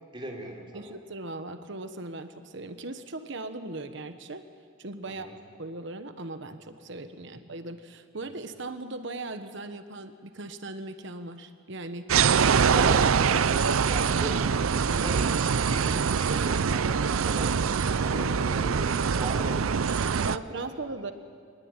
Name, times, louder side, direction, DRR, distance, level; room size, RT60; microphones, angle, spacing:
voice 1, 0.1-0.9 5.1-5.3 12.8-15.2 15.6-17.6 18.0-20.9, right 1 dB, 25° right, 1 dB, 3.4 m, -39 dB
voice 2, 0.7-4.4 4.8-5.3 5.6-12.9 13.9-14.1 20.1-21.1, right 2 dB, 60° right, 9 dB, 1.2 m, -38 dB
sound 1, 12.1-20.4, right 6 dB, 90° right, 0.6 m, -24 dB
24.0 x 20.0 x 9.0 m, 2.1 s
head